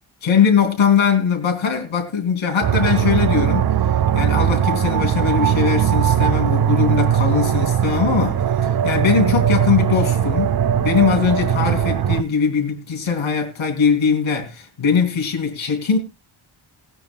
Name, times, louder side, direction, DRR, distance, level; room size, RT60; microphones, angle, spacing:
voice 1, 0.2-3.7 4.1-16.0, left 6 dB, 70° left, 3.2 m, -20 dB
sound 1, 2.6-12.2, right 9 dB, 50° right, 0.5 m, -19 dB
20.5 x 9.0 x 2.3 m
wide cardioid pair, 140°, 49 cm